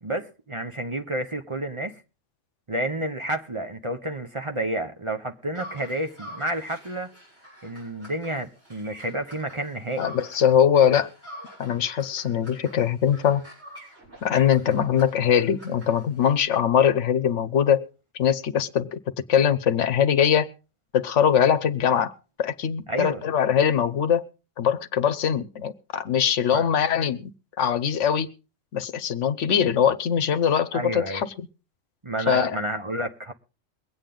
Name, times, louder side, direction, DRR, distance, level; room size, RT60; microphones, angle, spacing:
voice 1, 0.0-2.0 2.7-7.1 7.6-10.1 22.9-23.2 26.5-26.7 30.7-31.2 32.0-33.3, right 1 dB, 30° right, 0.9 m, -30 dB
sound 1, 5.5-10.6 10.9-16.4, equal, 60° right, 7.0 m, -46 dB
voice 2, 10.0-11.1 11.6-13.4 14.2-17.9 18.1-19.0 19.3-20.5 20.9-24.3 24.6-28.3 28.7-31.5 32.3-32.6, left 8 dB, 75° left, 1.1 m, -22 dB
22.5 x 8.9 x 3.8 m
omnidirectional pair, 1.2 m